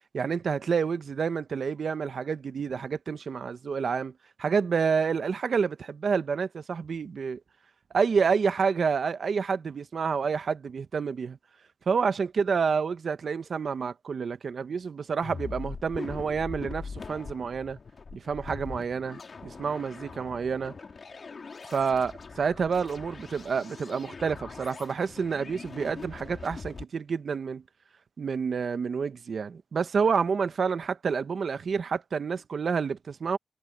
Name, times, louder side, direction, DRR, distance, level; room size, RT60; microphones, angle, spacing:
voice 1, 0.1-4.1 4.4-7.4 7.9-11.4 11.9-17.8 18.1-20.8 21.7-27.6 28.2-33.4, right 5 dB, 65° right, 1.0 m, -28 dB
sound 1, 15.2-26.8, left 4 dB, 55° left, 3.0 m, -42 dB
cardioid pair, 80°, 0 cm